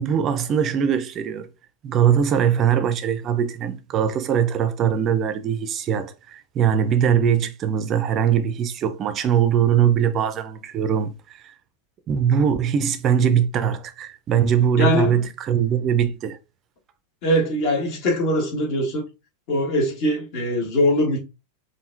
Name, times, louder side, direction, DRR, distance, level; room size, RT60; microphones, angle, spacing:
voice 1, 0.0-1.5 1.8-11.5 12.1-16.4, right 8 dB, 30° right, 0.6 m, -21 dB
voice 2, 14.8-15.2 17.2-19.0 19.5-21.2, left 1 dB, 45° left, 1.5 m, -22 dB
4.8 x 2.7 x 2.6 m
figure-of-eight pair, 90°, 0 cm